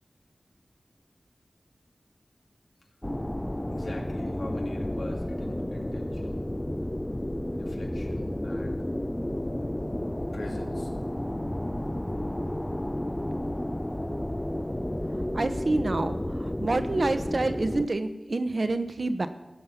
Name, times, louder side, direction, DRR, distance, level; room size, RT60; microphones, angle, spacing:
sound 1, 3.0-17.9, left 1 dB, 15° left, 0.4 m, -32 dB
voice 1, 3.7-6.5 7.5-8.9 10.3-10.9, left 1 dB, 85° left, 0 dB, 2.2 m, -41 dB
voice 2, 15.3-19.3, right 2 dB, 60° right, 9 dB, 0.9 m, -28 dB
15.5 x 5.5 x 7.1 m, 1.0 s
wide cardioid pair, 45°, 0 cm